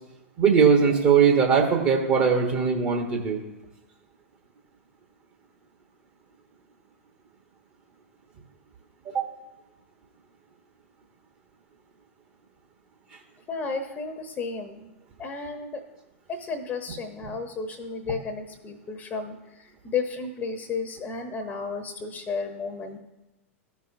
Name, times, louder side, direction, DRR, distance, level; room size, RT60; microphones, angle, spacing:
voice 1, 0.4-3.4 9.1-9.2, right 6 dB, 40° right, 1 dB, 1.2 m, -20 dB
voice 2, 13.5-14.9 15.2-15.8 16.3-23.0, left 4 dB, 25° left, 5 dB, 0.8 m, -33 dB
14.5 x 5.3 x 2.6 m, 1.0 s
figure-of-eight pair, 95°, 7 cm